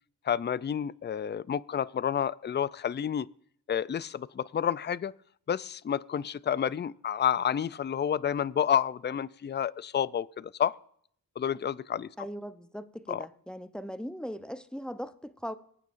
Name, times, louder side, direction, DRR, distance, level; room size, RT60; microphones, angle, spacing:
voice 1, 0.2-3.3 3.7-5.1 5.5-10.8 11.4-12.1 13.1-13.3, left 8 dB, 30° left, 0.4 m, -30 dB
voice 2, 12.2-15.5, equal, ahead, 0.7 m, -39 dB
24.5 x 9.1 x 2.6 m
cardioid pair, 50°, 40 cm